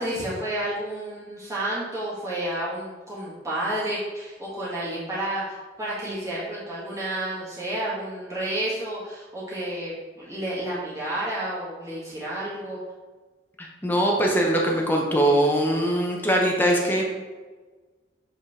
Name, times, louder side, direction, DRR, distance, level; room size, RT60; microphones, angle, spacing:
voice 1, 0.0-12.8, right 1 dB, 15° right, -9 dB, 1.8 m, -30 dB
voice 2, 13.6-17.0, right 1 dB, 10° left, -1 dB, 0.8 m, -22 dB
7.9 x 3.7 x 3.6 m, 1.3 s
head